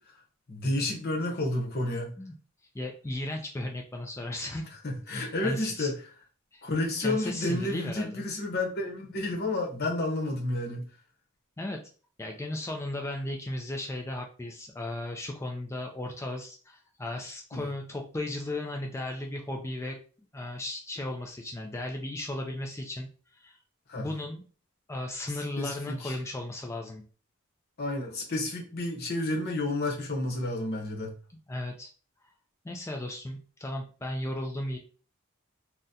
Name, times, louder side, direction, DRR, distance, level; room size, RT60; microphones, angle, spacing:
voice 1, 0.5-2.1 4.8-5.9 6.6-10.8 17.5-17.6 23.9-24.1 25.6-26.2 27.8-31.2, left 2 dB, 45° left, 0 dB, 0.9 m, -30 dB
voice 2, 2.7-4.6 5.1-5.9 6.5-6.6 7.0-8.2 11.6-11.8 12.2-20.0 20.3-23.6 24.0-24.4 24.9-27.0 31.5-31.9 32.6-34.8, left 1 dB, 15° left, 2 dB, 0.3 m, -35 dB
3.7 x 2.1 x 2.7 m, 0.38 s
head